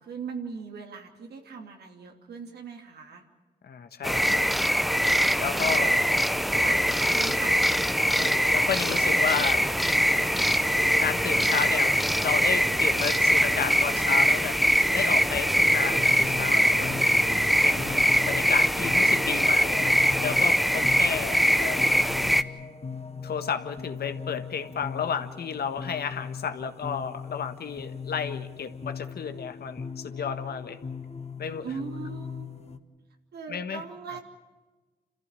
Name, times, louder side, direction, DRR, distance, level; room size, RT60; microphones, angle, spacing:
voice 1, 0.0-3.2 5.5-6.0 6.5-7.6 31.6-32.5 33.3-34.2, right 5 dB, 75° right, 3 dB, 2.9 m, -39 dB
voice 2, 3.6-4.4 5.4-6.3 8.1-9.6 11.0-14.6 14.9-17.0 17.6-19.9 20.2-21.9 23.2-30.8 31.4-31.7 33.5-33.8 34.1-34.2, left 7 dB, 70° left, 8 dB, 1.5 m, -32 dB
sound 1, 4.0-22.4, equal, ahead, 1.0 m, -23 dB
sound 2, 8.8-19.7, right 3 dB, 30° right, 2.0 m, -42 dB
sound 3, 15.9-32.8, left 6 dB, 40° left, 1.6 m, -39 dB
27.5 x 14.5 x 9.1 m, 1.3 s
supercardioid pair, 50°, 17 cm